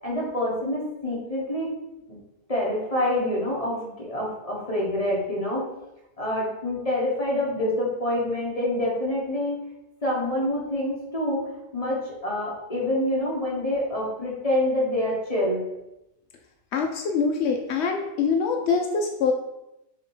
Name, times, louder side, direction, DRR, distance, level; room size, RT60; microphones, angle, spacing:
voice 1, 0.0-1.7 2.1-2.2 2.5-5.7 6.2-9.6 10.0-11.5 11.7-15.6, left 1 dB, 25° left, -4 dB, 1.5 m, -26 dB
voice 2, 16.7-19.3, left 5 dB, 75° left, 3 dB, 0.6 m, -24 dB
6.5 x 3.0 x 4.8 m, 0.90 s
omnidirectional pair, 1.7 m